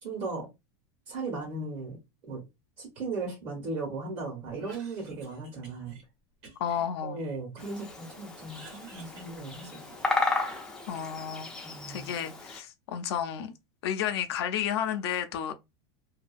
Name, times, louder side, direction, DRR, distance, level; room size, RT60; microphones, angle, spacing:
voice 1, 0.0-0.5 1.1-2.4 2.8-6.0 7.0-9.8 11.6-12.1, right 3 dB, 50° right, 1.2 m, -37 dB
Cough, 4.5-6.0 6.4-7.9 8.2-10.1, right 4 dB, 80° right, 1.4 m, -53 dB
voice 2, 6.6-7.2 10.9-11.5 11.9-13.5 13.8-15.5, left 9 dB, 80° left, 0.5 m, -32 dB
Bird vocalization bird call bird song, 7.6-12.6, left 3 dB, 5° left, 0.4 m, -34 dB
2.7 x 2.3 x 2.5 m
supercardioid pair, 155°, 13 cm